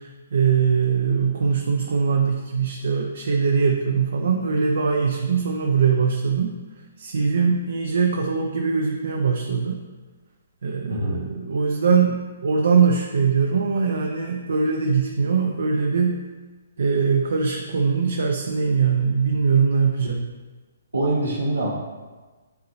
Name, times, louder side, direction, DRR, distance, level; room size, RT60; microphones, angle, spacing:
voice 1, 0.0-6.6 7.0-9.8 10.6-16.2 16.8-20.3, right 5 dB, 65° right, 1 dB, 0.6 m, -22 dB
voice 2, 10.9-11.2 20.9-21.7, right 1 dB, 90° right, -4 dB, 1.1 m, -24 dB
9.5 x 3.9 x 2.7 m, 1.3 s
figure-of-eight pair, 130°, 0 cm